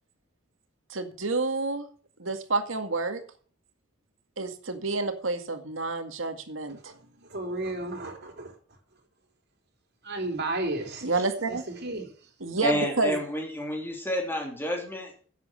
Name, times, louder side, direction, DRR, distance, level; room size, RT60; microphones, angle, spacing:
voice 1, 0.9-1.9 2.2-3.2 4.4-6.9 11.0-11.6 12.4-13.2, right 3 dB, 75° right, 2.0 m, -29 dB
voice 2, 7.3-8.5 10.0-11.1 11.5-11.6 11.8-12.1, right 2 dB, 55° right, 3.4 m, -32 dB
voice 3, 12.6-15.3, left 1 dB, 10° left, 3.2 m, -30 dB
10.5 x 7.9 x 7.5 m
head